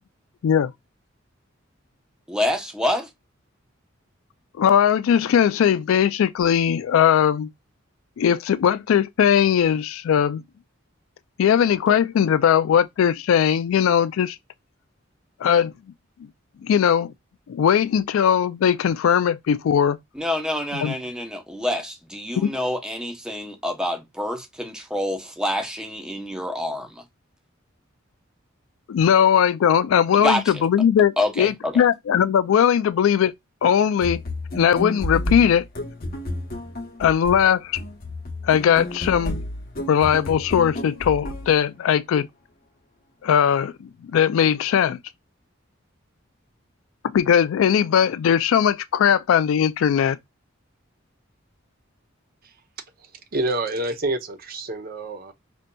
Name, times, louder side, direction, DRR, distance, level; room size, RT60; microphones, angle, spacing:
voice 1, 2.3-3.1 20.1-27.0 30.1-30.5 31.2-31.8, left 1 dB, 5° right, 0.7 m, -27 dB
voice 2, 4.6-7.5 8.2-10.4 11.4-14.4 15.4-15.7 16.2-16.3 16.6-17.1 17.5-20.0 20.8-20.9 22.4-22.5 28.9-33.3 33.6-34.2 34.6-35.6 37.0-37.8 38.4-39.4 39.9-42.3 43.2-43.7 44.0-45.0 47.0-50.2, left 8 dB, 80° left, 0.3 m, -19 dB
sound 1, 34.0-41.6, left 1 dB, 45° left, 0.8 m, -31 dB
voice 3, 53.0-55.3, right 2 dB, 45° right, 0.7 m, -28 dB
5.0 x 2.6 x 2.2 m
head